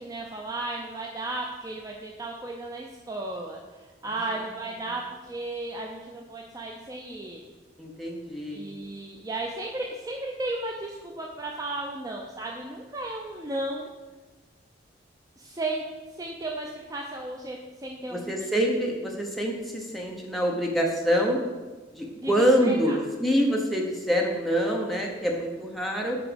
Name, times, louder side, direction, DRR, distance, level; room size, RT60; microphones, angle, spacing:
voice 1, 0.0-7.4 8.5-13.9 15.4-15.8 16.1-18.3 22.2-23.0, right 2 dB, 20° right, 0 dB, 0.4 m, -34 dB
voice 2, 7.8-8.6 18.1-21.4 21.9-26.2, equal, ahead, -1 dB, 0.8 m, -26 dB
4.9 x 4.8 x 5.1 m, 1.3 s
head